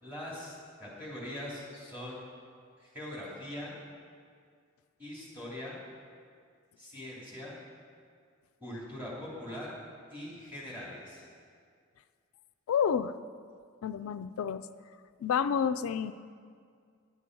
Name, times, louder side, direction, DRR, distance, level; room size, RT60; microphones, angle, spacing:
voice 1, 0.0-2.2 2.8-3.7 5.0-5.8 6.8-7.6 8.6-9.7 10.1-11.2, left 1 dB, 10° right, -7 dB, 3.0 m, -42 dB
voice 2, 12.7-13.1 13.8-14.6 15.2-16.1, left 7 dB, 85° left, 12 dB, 0.3 m, -29 dB
10.0 x 8.3 x 6.2 m, 2.1 s
head